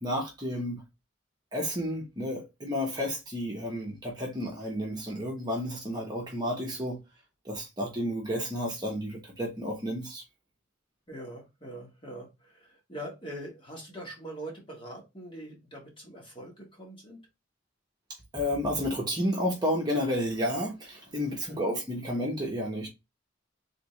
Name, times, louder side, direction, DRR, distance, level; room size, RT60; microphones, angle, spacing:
voice 1, 0.0-0.8 1.5-7.0 7.4-10.2 18.3-22.9, equal, 20° right, 1.1 m, -31 dB
voice 2, 11.1-17.2 21.5-21.6, right 1 dB, 25° left, 1.5 m, -43 dB
3.6 x 3.4 x 3.1 m
head